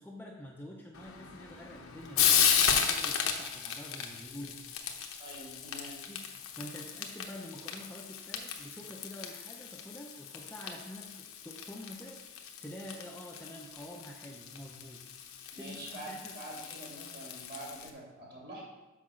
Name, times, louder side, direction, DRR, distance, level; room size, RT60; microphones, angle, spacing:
voice 1, 0.0-4.6 6.0-12.3 12.6-15.1 15.6-16.3, left 1 dB, 10° left, -1 dB, 0.6 m, -47 dB
Frying (food), 0.9-17.9, left 8 dB, 70° left, 0.8 m, -34 dB
voice 2, 5.2-6.1 15.5-18.6, right 1 dB, 45° right, -4 dB, 2.8 m, -45 dB
6.0 x 5.5 x 6.2 m, 1.1 s
head